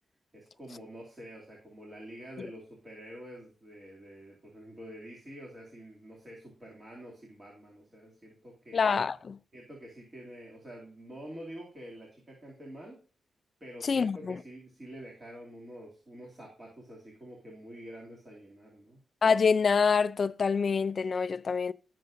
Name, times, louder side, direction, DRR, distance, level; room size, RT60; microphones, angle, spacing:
voice 1, 0.3-8.8 9.5-13.0 13.6-19.0, equal, 20° right, 2.7 m, -47 dB
voice 2, 8.7-9.4 13.8-14.4 19.2-21.7, left 5 dB, 45° left, 0.5 m, -26 dB
19.5 x 6.7 x 2.6 m
wide cardioid pair, 150°, 0 cm